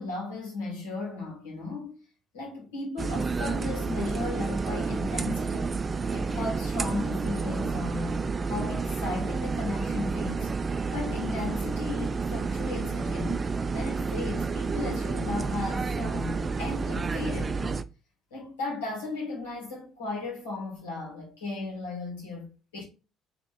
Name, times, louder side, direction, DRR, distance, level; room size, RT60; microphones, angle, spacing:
voice 1, 0.0-2.0 2.3-5.7 6.1-10.5 10.9-13.5 13.7-17.8 18.3-22.8, left 3 dB, 75° left, 2.0 m, -35 dB
sound 1, 3.0-17.8, right 4 dB, 30° right, 0.4 m, -30 dB
4.1 x 3.1 x 3.3 m
figure-of-eight pair, 50°, 0 cm